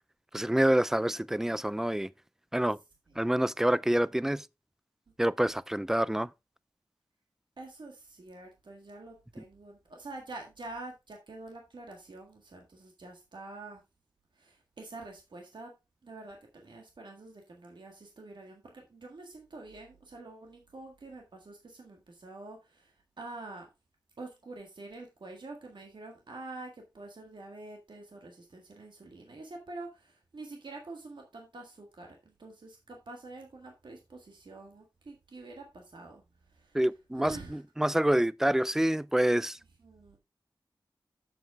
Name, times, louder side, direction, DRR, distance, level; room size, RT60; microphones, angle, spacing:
voice 1, 0.3-2.1 2.5-2.8 3.2-4.5 5.2-6.3 36.7-39.6, right 1 dB, 5° right, 0.3 m, -27 dB
voice 2, 7.6-13.8 14.4-15.7 16.0-23.7 24.2-36.2 36.6-36.8 37.2-37.6 39.8-40.2, right 2 dB, 70° right, 1.7 m, -46 dB
7.8 x 7.3 x 3.4 m
wide cardioid pair, 85°, 8 cm